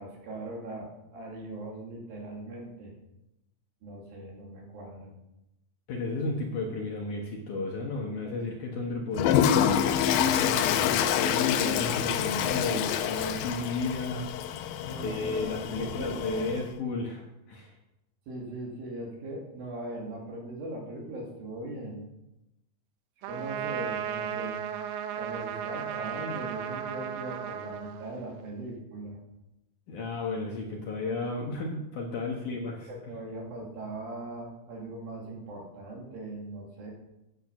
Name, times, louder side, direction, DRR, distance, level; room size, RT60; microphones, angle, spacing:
voice 1, 0.0-2.9 3.8-5.1 14.8-16.5 18.3-22.0 23.3-24.6 25.2-29.2 32.2-32.4 32.8-36.9, right 2 dB, 60° right, -1 dB, 3.9 m, -40 dB
voice 2, 5.9-9.5 10.0-14.3 14.9-17.7 29.9-32.9, left 3 dB, 65° left, -1 dB, 2.2 m, -33 dB
Toilet flush, 9.1-16.7, left 9 dB, 85° left, 2.0 m, -27 dB
Trumpet, 23.2-28.5, right 9 dB, 75° right, 2.7 m, -35 dB
11.0 x 8.7 x 6.1 m, 0.91 s
omnidirectional pair, 4.9 m